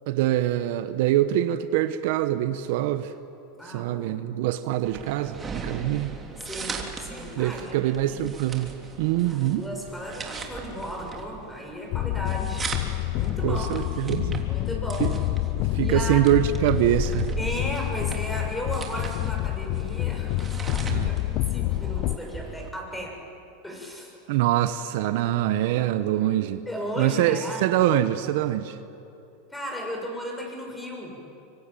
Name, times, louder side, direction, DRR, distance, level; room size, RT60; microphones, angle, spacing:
voice 1, 0.1-3.1 3.6-6.1 7.4-8.7 9.0-9.6 13.4-14.4 15.0-15.1 15.5-17.3 20.9-21.1 24.3-26.6 27.0-28.8, right 13 dB, 65° right, 11 dB, 1.1 m, -24 dB
voice 2, 3.6-4.2 6.4-8.3 9.2-13.8 14.5-15.1 15.8-16.4 17.4-23.2 23.6-24.2 26.7-27.8 29.5-31.2, equal, 5° left, 0 dB, 7.1 m, -35 dB
sound 1, 4.8-22.7, right 4 dB, 20° right, 3.2 m, -39 dB
sound 2, 11.9-22.2, left 17 dB, 55° left, 0.6 m, -28 dB
25.0 x 24.5 x 9.2 m, 2.8 s
supercardioid pair, 125°, 0 cm